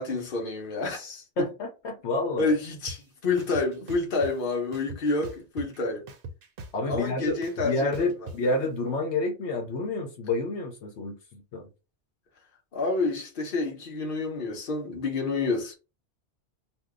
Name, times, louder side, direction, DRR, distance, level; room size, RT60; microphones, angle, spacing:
voice 1, 0.0-1.2 2.4-6.1 6.9-7.9 12.7-15.7, left 3 dB, 50° left, 1.0 m, -28 dB
voice 2, 1.4-2.5 6.7-11.7, left 2 dB, 75° left, 1.0 m, -29 dB
sound 1, 2.9-3.0 3.4-4.3 4.7-5.8 6.1-8.4, right 2 dB, 60° right, 0.7 m, -40 dB
2.7 x 2.2 x 3.5 m
omnidirectional pair, 1.2 m